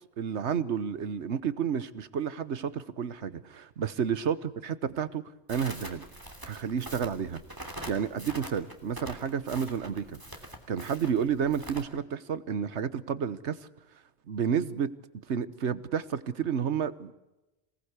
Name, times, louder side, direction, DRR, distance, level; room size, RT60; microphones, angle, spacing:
voice 1, 0.2-5.2 5.5-6.1 6.4-7.4 7.9-10.2 10.7-13.6 14.3-14.9 15.3-17.1, right 7 dB, 80° right, 15 dB, 1.4 m, -31 dB
Crackle, 5.5-11.8, right 1 dB, 20° right, 3.1 m, -44 dB
26.5 x 19.0 x 8.2 m, 1.0 s
omnidirectional pair, 1.1 m